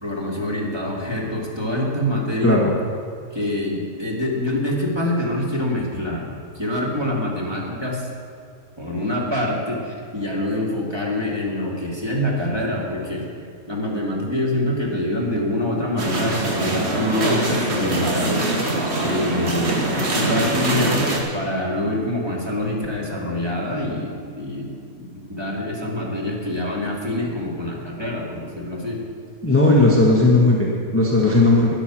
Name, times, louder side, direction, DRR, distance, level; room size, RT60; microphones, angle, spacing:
voice 1, 0.0-2.6 3.3-6.3 6.5-8.1 8.8-13.2 13.7-18.5 19.0-29.0, left 1 dB, 15° right, -3 dB, 2.2 m, -25 dB
voice 2, 2.4-2.7 29.4-31.7, left 2 dB, 10° left, -3 dB, 1.4 m, -16 dB
sound 1, 16.0-21.2, right 2 dB, 45° right, 1.9 m, -23 dB
12.5 x 10.5 x 6.1 m, 2.4 s
omnidirectional pair, 1.6 m